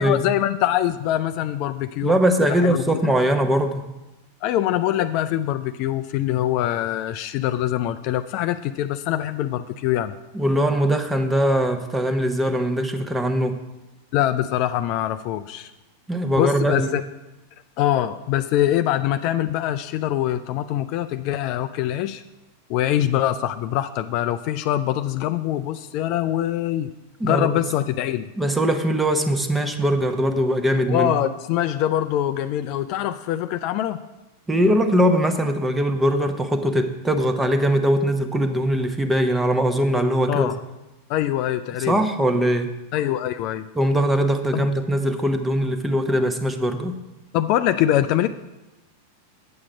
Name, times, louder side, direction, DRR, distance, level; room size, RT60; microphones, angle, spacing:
voice 1, 0.0-2.2 2.5-2.9 4.4-10.2 14.1-15.7 16.4-17.0 17.8-22.2 22.7-26.9 27.2-28.3 30.9-34.0 40.3-40.6 41.1-41.9 42.9-43.7 44.5-44.7 47.3-48.3, left 12 dB, 45° left, 10 dB, 0.3 m, -23 dB
voice 2, 2.0-3.9 10.3-13.6 16.1-16.9 27.2-27.5 28.4-31.1 34.5-40.5 41.9-42.7 43.7-47.0, equal, 10° right, 7 dB, 0.9 m, -21 dB
8.6 x 7.3 x 5.0 m, 1.0 s
figure-of-eight pair, 90°, 0 cm